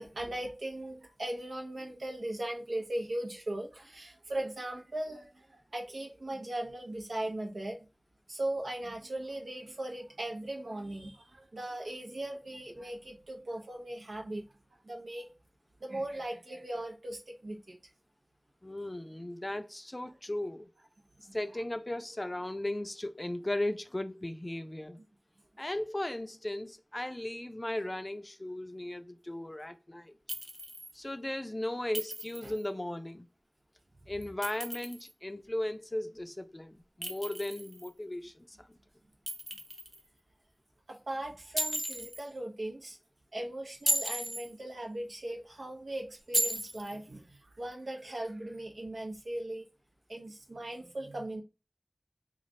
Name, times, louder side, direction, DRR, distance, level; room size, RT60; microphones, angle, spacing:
voice 1, 0.0-7.8 8.3-14.4 14.8-15.3 15.8-17.8 21.3-21.4 32.4-32.5 40.9-43.0 43.3-49.7 50.1-51.4, right 1 dB, 85° right, 0.9 m, -38 dB
voice 2, 18.6-20.7 21.3-25.0 25.6-30.1 30.9-33.3 34.1-38.8, left 1 dB, 30° left, 0.4 m, -37 dB
Chink clink, 30.3-30.9 31.9-32.6 34.2-35.1 37.0-37.9 39.3-40.0 41.6-42.2 43.7-44.5 46.3-47.0, equal, 20° right, 0.6 m, -34 dB
3.1 x 2.4 x 3.8 m
wide cardioid pair, 60°, 0 cm